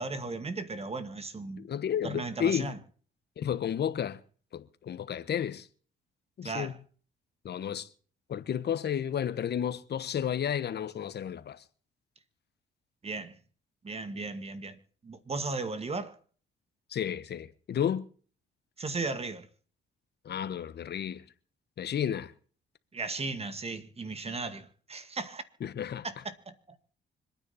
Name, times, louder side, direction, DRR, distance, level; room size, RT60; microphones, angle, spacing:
voice 1, 0.0-1.7 2.0-2.8 6.4-6.8 13.0-13.4 13.8-16.2 18.8-19.5 22.9-25.4 26.0-26.8, right 3 dB, 30° right, 2.1 m, -36 dB
voice 2, 1.6-2.7 3.4-4.2 4.5-5.7 6.4-6.7 7.4-7.9 8.3-11.6 16.9-18.1 20.2-21.3 21.8-22.3 25.6-26.0, left 9 dB, 55° left, 1.4 m, -32 dB
26.0 x 9.8 x 4.3 m
cardioid pair, 90°, 20 cm